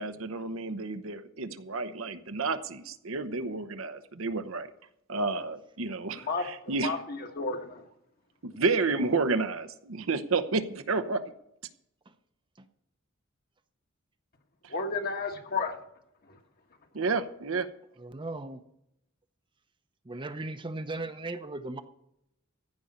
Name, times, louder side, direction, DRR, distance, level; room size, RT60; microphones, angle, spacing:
voice 1, 0.0-4.7 5.1-6.9 8.4-11.3 14.6-14.7 16.9-17.7, right 3 dB, 75° right, 0.9 m, -30 dB
voice 2, 6.8-7.8 14.7-15.8, left 4 dB, 50° left, 1.5 m, -32 dB
voice 3, 18.0-18.6 20.0-21.8, right 2 dB, 25° right, 0.7 m, -37 dB
14.5 x 5.4 x 8.6 m
head